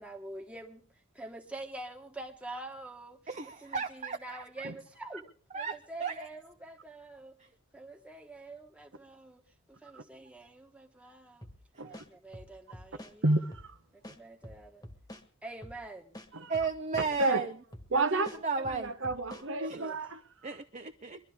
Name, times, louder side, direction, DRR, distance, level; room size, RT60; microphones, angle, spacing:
voice 1, 0.0-5.2 5.5-7.4 7.7-9.4 9.7-11.5 11.9-13.4 13.9-14.9 15.4-16.2 19.7-20.0, right 2 dB, 5° right, 1.5 m, -46 dB
voice 2, 3.3-4.7 5.5-6.3 11.8-12.0 16.5-17.5 17.9-18.9 19.6-19.8 20.4-21.2, right 4 dB, 35° right, 0.7 m, -35 dB
sound 1, 11.4-11.6 11.9-13.1 13.5-13.7 14.0-15.2 15.6-15.8 16.1-17.4 17.7-17.9 18.2-19.5, left 1 dB, 15° left, 1.5 m, -47 dB
voice 3, 13.2-13.7 16.3-16.5 17.2-17.4 17.9-20.2, right 2 dB, 60° right, 1.1 m, -30 dB
23.5 x 12.5 x 3.6 m
head